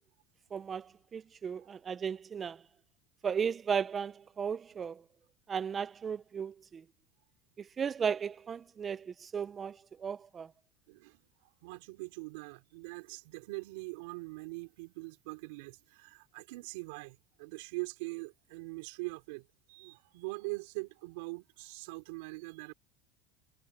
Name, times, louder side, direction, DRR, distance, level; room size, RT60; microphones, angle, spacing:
voice 1, 0.5-2.6 3.2-5.0 5.5-6.8 7.6-10.5, right 7 dB, 25° right, 0.5 m, -35 dB
voice 2, 10.9-11.2 11.6-22.7, right 27 dB, 80° right, 4.1 m, -42 dB
supercardioid pair, 130°, 0 cm